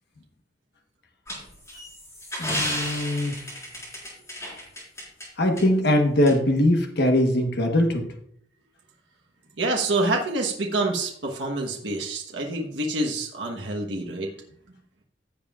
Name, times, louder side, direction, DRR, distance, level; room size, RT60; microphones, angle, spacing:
sound 1, 1.3-5.3 5.6-5.7 6.3-6.4, equal, 15° left, 4.4 m, -32 dB
voice 1, 2.4-3.3 5.4-8.1, left 1 dB, 60° left, 3 dB, 1.2 m, -21 dB
voice 2, 9.6-14.3, right 2 dB, 75° right, 0 dB, 1.2 m, -27 dB
15.5 x 7.1 x 2.4 m, 0.67 s
head